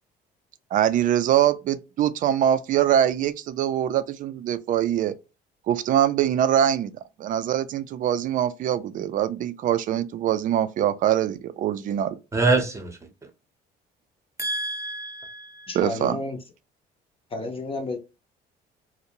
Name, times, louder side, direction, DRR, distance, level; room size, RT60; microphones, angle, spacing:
voice 1, 0.7-5.1 5.7-6.9 7.2-12.2 15.8-16.2, right 10 dB, 50° right, 0.4 m, -23 dB
voice 2, 12.3-13.0 14.4-15.7, right 3 dB, 15° right, 0.7 m, -26 dB
voice 3, 15.7-16.4 17.3-18.0, left 2 dB, 35° left, 0.5 m, -31 dB
2.6 x 2.0 x 2.8 m
cardioid pair, 110°, 17 cm